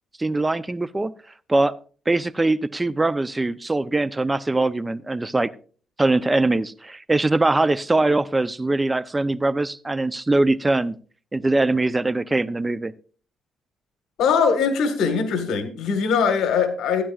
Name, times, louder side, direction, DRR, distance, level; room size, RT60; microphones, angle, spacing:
voice 1, 0.2-1.1 1.5-1.7 2.1-5.5 6.0-11.0 11.3-12.9, right 2 dB, 15° right, 16 dB, 0.6 m, -22 dB
voice 2, 14.2-17.0, left 6 dB, 80° left, 8 dB, 1.6 m, -21 dB
15.0 x 10.0 x 2.4 m, 0.40 s
cardioid pair, 90°, 0 cm